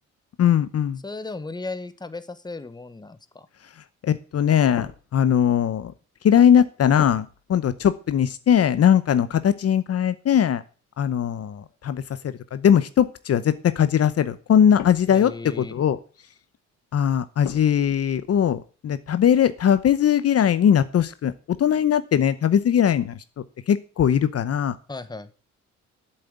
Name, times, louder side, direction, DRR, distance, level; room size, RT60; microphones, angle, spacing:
voice 1, 0.4-1.0 4.0-5.9 6.2-10.6 11.0-16.0 16.9-24.8, left 9 dB, 55° left, 14 dB, 0.9 m, -20 dB
voice 2, 1.0-3.5 15.1-15.7 24.9-25.3, left 3 dB, 15° left, 12 dB, 1.2 m, -35 dB
sound 1, 4.8-5.9 7.0-7.5 7.8-8.1 9.0-10.2 11.1-11.2 11.7-12.4 14.3-15.4 17.4-18.0, left 10 dB, 80° left, 1.7 m, -41 dB
8.5 x 7.7 x 8.0 m, 0.37 s
cardioid pair, 90°, 30 cm